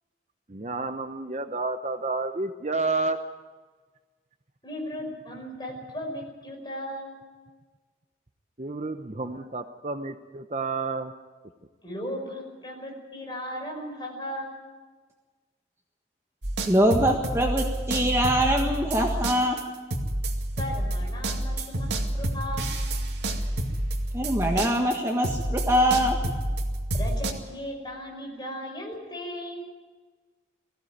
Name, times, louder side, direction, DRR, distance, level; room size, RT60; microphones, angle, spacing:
voice 1, 0.5-3.2 8.6-11.1, right 3 dB, 40° right, 8 dB, 0.8 m, -30 dB
voice 2, 4.6-7.2 9.3-9.4 11.8-14.6 20.6-22.9 26.9-29.7, equal, 25° left, 1 dB, 5.4 m, -36 dB
sound 1, 16.4-25.0 25.2-27.3, right 1 dB, 75° right, 2.4 m, -29 dB
voice 3, 16.7-19.6 24.1-26.2, equal, 15° right, 1 dB, 1.6 m, -23 dB
19.5 x 16.0 x 9.3 m, 1.4 s
head